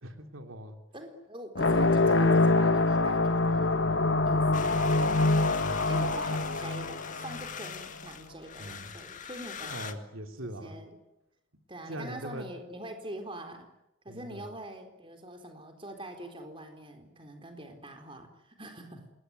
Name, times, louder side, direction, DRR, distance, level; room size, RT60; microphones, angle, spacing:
voice 1, 0.0-0.8 5.6-6.1 8.6-8.9 9.6-10.8 11.9-12.4 14.1-14.5, right 1 dB, 85° right, 5 dB, 3.4 m, -41 dB
voice 2, 0.9-3.8 4.2-4.9 5.9-9.9 10.4-11.0 11.7-13.7 14.0-19.1, right 1 dB, 25° right, 5 dB, 4.0 m, -43 dB
sound 1, 1.5-7.7, left 2 dB, 65° left, 1.4 m, -25 dB
sound 2, 4.5-9.9, left 7 dB, 40° left, 2.0 m, -42 dB
27.5 x 21.5 x 9.7 m, 0.89 s
head